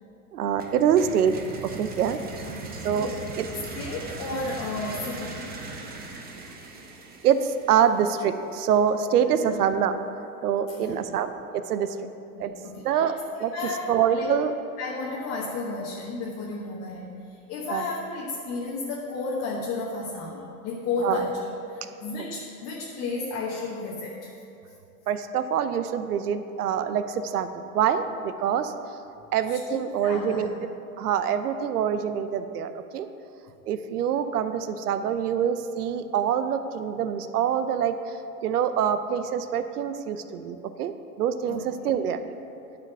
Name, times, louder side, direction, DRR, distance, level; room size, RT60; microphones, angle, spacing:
voice 1, 0.3-1.3 1.6-3.1 3.4-3.5 7.2-10.0 10.4-11.9 12.4-12.5 12.8-13.5 13.9-14.5 17.7-17.9 21.0-21.2 25.1-28.7 29.3-30.5 31.0-33.1 33.7-38.2 38.4-42.2, right 8 dB, 85° right, 11 dB, 0.7 m, -25 dB
sound 1, 0.6-8.4, right 3 dB, 20° right, 1.0 m, -39 dB
voice 2, 2.4-3.2 3.7-5.4 9.4-9.6 10.7-11.0 12.4-13.1 13.5-14.3 14.8-21.4 21.7-24.3 29.5-30.5 41.5-41.6, left 3 dB, 35° left, -3 dB, 1.1 m, -33 dB
9.4 x 5.1 x 6.8 m, 2.8 s
hypercardioid pair, 120°, 44 cm